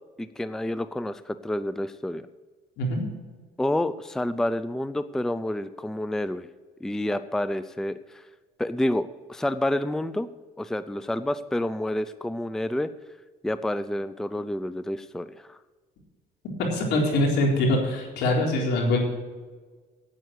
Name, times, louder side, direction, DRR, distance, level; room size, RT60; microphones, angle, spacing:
voice 1, 0.2-2.3 3.6-6.5 6.8-8.2 8.6-10.3 10.6-12.9 13.4-15.6, left 1 dB, 5° left, 13 dB, 0.4 m, -29 dB
voice 2, 16.6-19.0, left 1 dB, 80° left, 0 dB, 3.9 m, -23 dB
9.3 x 8.9 x 8.2 m, 1.4 s
cardioid pair, 110°, 17 cm